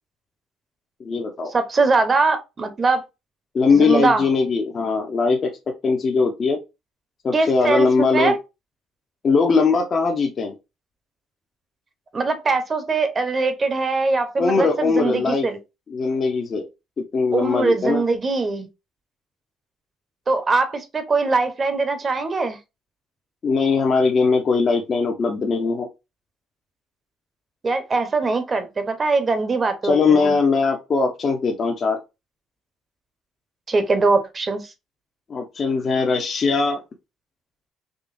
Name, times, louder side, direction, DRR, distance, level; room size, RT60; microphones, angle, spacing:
voice 1, 1.0-1.5 3.5-5.5 5.8-6.6 7.2-8.3 9.2-10.5 14.4-15.5 15.9-16.7 17.0-18.0 23.4-25.9 29.8-32.0 35.3-36.8, left 4 dB, 45° left, 0.7 m, -20 dB
voice 2, 1.5-3.0 3.7-4.3 7.3-8.4 12.1-15.6 17.3-18.7 20.3-22.6 27.6-30.4 33.7-34.7, right 3 dB, 30° right, 0.8 m, -22 dB
3.7 x 3.0 x 2.6 m
cardioid pair, 95°, 0 cm